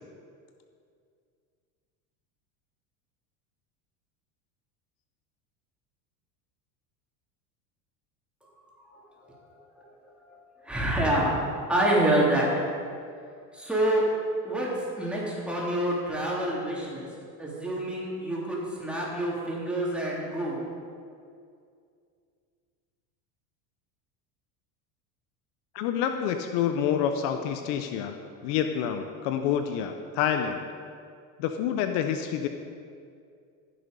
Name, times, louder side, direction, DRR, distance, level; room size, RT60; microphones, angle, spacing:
voice 1, 10.6-12.6 13.5-14.1 14.4-14.7 15.0-17.0 17.4-20.6, right 1 dB, ahead, -5 dB, 3.2 m, -27 dB
voice 2, 25.7-28.2 28.4-30.6 31.4-32.5, left 8 dB, 65° left, 7 dB, 0.9 m, -28 dB
15.5 x 6.9 x 5.3 m, 2.3 s
supercardioid pair, 120°, 45 cm